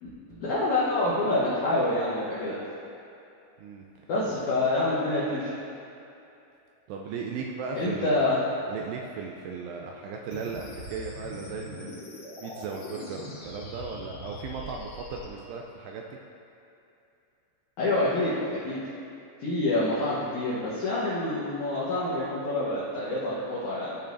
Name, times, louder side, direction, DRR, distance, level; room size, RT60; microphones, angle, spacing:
voice 1, 0.0-2.6 4.1-5.5 7.7-8.4 17.8-18.3 18.6-18.8 19.4-24.0, left 2 dB, 75° left, -9 dB, 1.7 m, -27 dB
voice 2, 6.9-8.4 8.7-12.0 12.4-16.0, right 5 dB, 85° right, 0 dB, 2.4 m, -36 dB
sound 1, 10.3-15.3, left 1 dB, 55° left, 3.4 m, -42 dB
15.5 x 5.4 x 2.6 m, 2.7 s
omnidirectional pair, 5.2 m